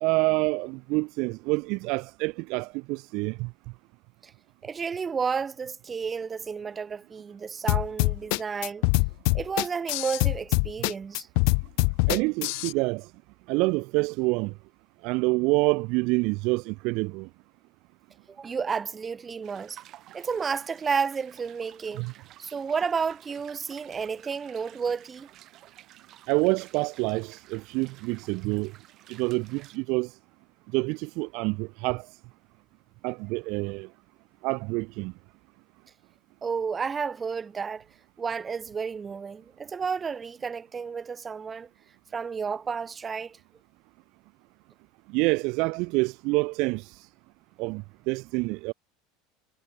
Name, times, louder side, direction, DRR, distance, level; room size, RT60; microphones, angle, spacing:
voice 1, 0.0-3.5 12.1-13.1 13.5-14.5 15.0-17.3 22.0-22.1 26.3-28.7 29.1-30.1 30.7-32.1 33.0-33.9 34.4-35.1 45.1-47.1 47.6-48.7, right 26 dB, 55° right, 0.5 m, -27 dB
voice 2, 4.6-8.9 9.3-11.3 18.3-19.8 20.1-22.0 22.4-25.3 36.4-37.9 38.2-41.7 42.1-43.4, right 6 dB, 15° right, 3.6 m, -31 dB
sound 1, 7.7-12.7, left 40 dB or more, 60° left, 0.4 m, -24 dB
sound 2, 19.4-29.8, right 14 dB, 40° right, 5.7 m, -53 dB
supercardioid pair, 155°, 0 cm